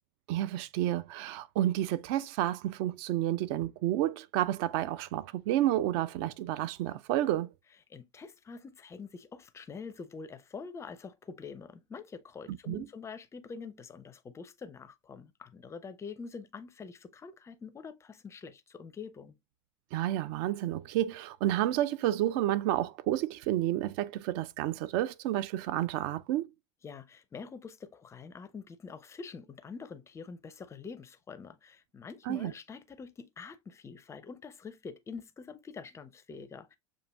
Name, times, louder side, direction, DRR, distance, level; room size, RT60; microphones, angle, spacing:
voice 1, 0.3-7.5 12.7-12.9 19.9-26.5 32.3-32.5, right 13 dB, 50° right, 0.4 m, -30 dB
voice 2, 7.9-19.4 26.8-36.8, left 5 dB, 15° left, 0.5 m, -45 dB
6.6 x 2.6 x 2.2 m
hypercardioid pair, 90°, 16 cm